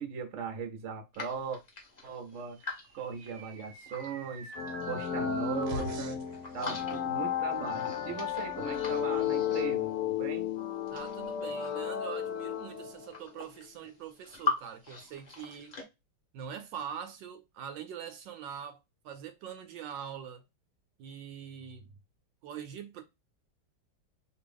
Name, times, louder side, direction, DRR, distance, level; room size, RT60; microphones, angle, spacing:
voice 1, 0.0-1.6 2.0-2.6 2.9-4.5 4.9-6.2 6.5-10.5, right 6 dB, 60° right, 0.8 m, -39 dB
sound 1, 1.1-4.1 4.5-6.0 6.3-7.2 7.5-10.1 10.7-12.0 12.7-12.8 13.0-14.6 14.8-15.8, left 3 dB, 40° left, 0.6 m, -40 dB
sound 2, 2.7-6.4, right 3 dB, 90° right, 1.5 m, -43 dB
sound 3, 4.6-13.2, left 9 dB, 70° left, 0.9 m, -33 dB
voice 2, 10.9-15.7 16.3-20.4 21.0-21.9 22.4-23.0, right 8 dB, 75° right, 1.2 m, -43 dB
3.0 x 2.6 x 3.3 m
omnidirectional pair, 2.2 m